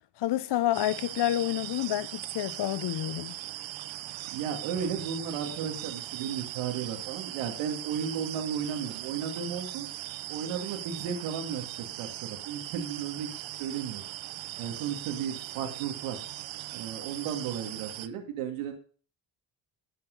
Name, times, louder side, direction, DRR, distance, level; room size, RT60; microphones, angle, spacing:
voice 1, 0.2-3.3, left 13 dB, 55° left, 0.7 m, -29 dB
sound 1, 0.7-18.1, right 14 dB, 65° right, 0.9 m, -39 dB
voice 2, 4.3-9.9 10.3-14.0 14.6-16.2 16.7-18.7, right 7 dB, 85° right, 2.4 m, -34 dB
11.5 x 8.3 x 3.9 m
supercardioid pair, 55°, 50 cm